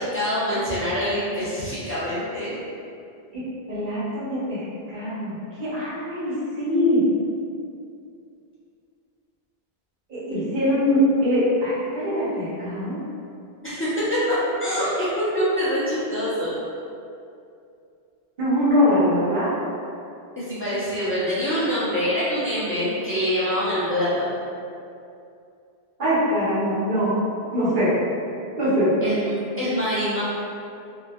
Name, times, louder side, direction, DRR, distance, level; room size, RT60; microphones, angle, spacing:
voice 1, 0.0-2.5 13.6-16.5 20.4-24.3 29.0-30.2, equal, 15° left, -13 dB, 0.7 m, -25 dB
voice 2, 3.7-4.6 4.9-7.0 10.1-13.0 18.4-19.5 26.0-27.1 27.5-27.9 28.5-28.9, equal, 50° right, -11 dB, 1.1 m, -22 dB
2.9 x 2.5 x 2.4 m, 2.5 s
omnidirectional pair, 1.1 m